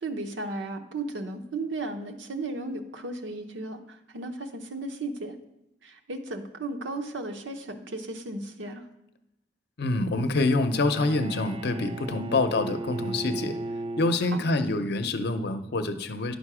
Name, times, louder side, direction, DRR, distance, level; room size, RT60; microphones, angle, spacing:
voice 1, 0.0-5.3 5.8-8.8 12.1-12.3 14.3-14.4, right 2 dB, 85° right, 5 dB, 0.9 m, -35 dB
voice 2, 9.8-13.6 14.0-16.4, left 2 dB, 60° left, 9 dB, 0.6 m, -26 dB
Bowed string instrument, 10.6-14.8, right 2 dB, 30° right, 0.3 m, -36 dB
10.5 x 5.2 x 4.9 m, 0.91 s
head